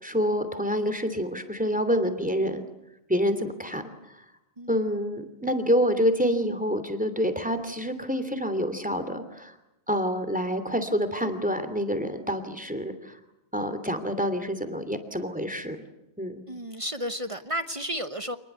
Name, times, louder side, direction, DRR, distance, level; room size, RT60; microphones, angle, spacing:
voice 1, 0.0-2.6 3.1-3.8 4.7-9.5 9.9-13.2 13.5-15.8 16.2-16.4, equal, 5° right, 9 dB, 2.9 m, -27 dB
voice 2, 4.6-5.3 16.5-18.4, equal, 30° right, 11 dB, 1.0 m, -33 dB
27.0 x 20.5 x 8.2 m, 0.90 s
omnidirectional pair, 1.1 m